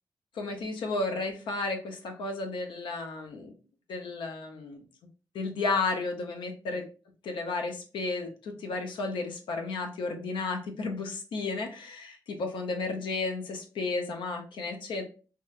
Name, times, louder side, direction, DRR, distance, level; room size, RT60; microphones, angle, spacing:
voice 1, 0.3-3.5 3.9-4.8 5.3-6.8 7.2-15.1, left 3 dB, 85° left, 4 dB, 0.5 m, -33 dB
2.8 x 2.3 x 2.4 m, 0.35 s
cardioid pair, 55°, 8 cm